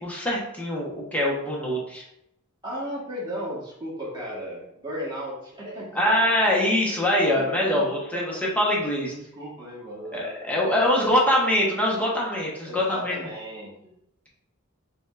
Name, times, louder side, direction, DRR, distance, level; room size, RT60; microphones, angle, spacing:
voice 1, 0.0-2.0 6.0-9.1 10.1-13.1, left 1 dB, 5° left, -4 dB, 1.1 m, -23 dB
voice 2, 2.6-6.4 7.3-8.4 9.0-11.1 12.6-13.9, equal, 20° right, -6 dB, 1.5 m, -36 dB
5.0 x 3.6 x 2.5 m, 0.80 s
head